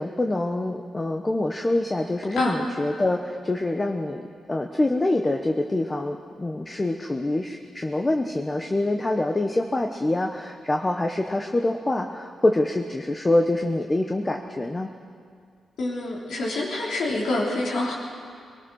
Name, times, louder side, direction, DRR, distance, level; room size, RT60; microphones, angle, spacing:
voice 1, 0.0-14.9, left 2 dB, 20° left, 4 dB, 1.0 m, -25 dB
voice 2, 15.8-17.9, left 2 dB, 75° left, -4 dB, 3.5 m, -26 dB
22.5 x 18.5 x 6.3 m, 2.2 s
wide cardioid pair, 125°, 0 cm